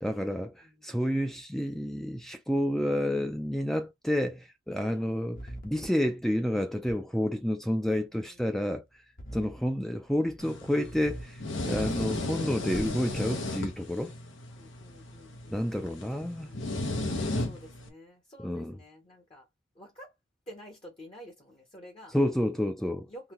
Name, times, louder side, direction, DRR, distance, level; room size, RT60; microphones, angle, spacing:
voice 1, 0.0-5.4 5.6-8.8 9.3-14.1 15.5-16.5 18.4-18.7 22.1-23.1, equal, ahead, 0.4 m, -29 dB
voice 2, 0.6-1.2 4.9-5.1 8.0-8.4 9.2-9.6 14.5-16.0 16.4-16.7 17.4-19.5 19.7-20.1 20.5-22.2 23.1-23.3, equal, 30° left, 0.9 m, -50 dB
sound 1, 5.4-5.9 6.9-7.0 9.2-9.6 10.1-10.4 10.8-11.2 11.6-12.2 12.7-13.2, right 1 dB, 50° left, 1.0 m, -41 dB
sound 2, 10.4-17.9, left 2 dB, 75° left, 1.0 m, -35 dB
4.0 x 2.7 x 3.0 m
head